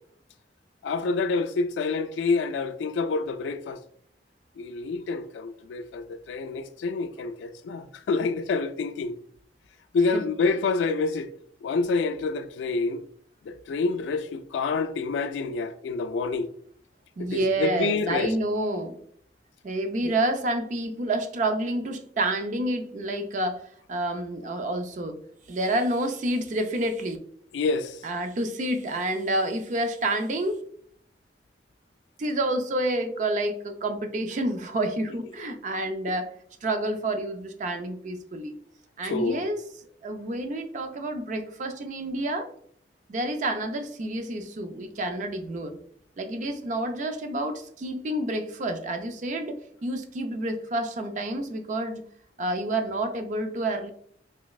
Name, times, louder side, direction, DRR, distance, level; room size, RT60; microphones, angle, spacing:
voice 1, 0.8-3.8 4.6-9.1 9.9-11.3 11.6-13.0 13.5-16.5 17.2-18.3 20.0-20.1 27.5-28.0 39.0-39.5, left 4 dB, 85° left, 0.3 m, -27 dB
voice 2, 17.2-19.0 19.6-23.6 23.9-25.2 25.5-27.2 28.0-30.6 32.2-36.3 36.6-38.5 39.0-39.6 40.0-42.5 43.1-45.8 46.2-52.0 52.4-53.9, right 1 dB, 45° right, 0.4 m, -29 dB
3.3 x 3.0 x 2.3 m
head